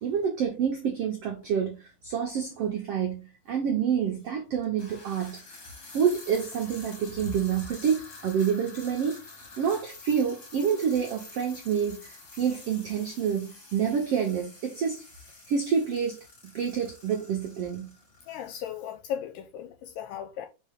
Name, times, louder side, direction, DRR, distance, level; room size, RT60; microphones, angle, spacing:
voice 1, 0.0-5.4 5.9-9.2 9.6-15.0 15.5-16.2 16.5-17.9, right 7 dB, 75° right, 1.4 m, -28 dB
sound 1, 1.4-1.5 2.5-2.6 4.6-18.7, left 3 dB, 30° left, 1.8 m, -48 dB
voice 2, 18.3-20.5, left 9 dB, 80° left, 2.2 m, -36 dB
5.5 x 4.8 x 3.6 m
omnidirectional pair, 4.2 m